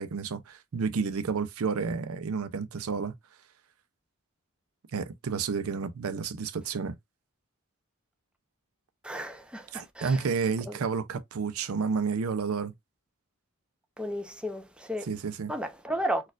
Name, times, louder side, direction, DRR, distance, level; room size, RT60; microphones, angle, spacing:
voice 1, 0.0-3.1 4.9-7.0 9.7-12.7 15.1-15.5, right 5 dB, 80° right, 0.5 m, -30 dB
voice 2, 9.0-10.3 10.7-10.8 14.0-15.1 15.5-16.2, equal, 5° right, 0.5 m, -33 dB
4.2 x 2.4 x 2.4 m
head